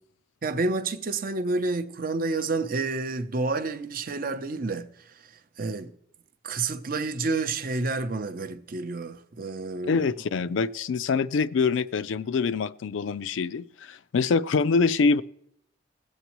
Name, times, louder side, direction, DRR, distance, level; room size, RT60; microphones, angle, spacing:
voice 1, 0.4-4.9 5.6-5.9 6.4-10.0, right 3 dB, 45° right, 0.6 m, -29 dB
voice 2, 9.9-15.2, left 4 dB, 75° left, 0.4 m, -25 dB
22.0 x 8.1 x 3.0 m
head